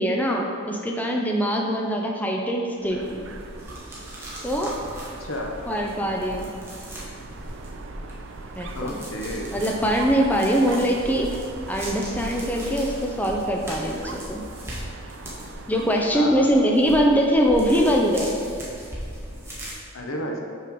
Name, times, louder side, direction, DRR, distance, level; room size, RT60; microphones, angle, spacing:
voice 1, 0.0-3.2 4.4-4.7 5.7-6.5 8.6-8.9 9.5-11.3 11.7-14.4 15.7-18.4, equal, 10° left, 0 dB, 0.5 m, -22 dB
Dog, 2.8-16.1, right 3 dB, 65° right, 0.4 m, -41 dB
sound 1, 3.0-19.7, equal, 10° right, 1.3 m, -39 dB
voice 2, 5.2-5.6 8.7-9.5 16.1-16.7 19.9-20.4, left 1 dB, 85° left, 1 dB, 0.9 m, -31 dB
5.8 x 5.5 x 4.6 m, 2.3 s
head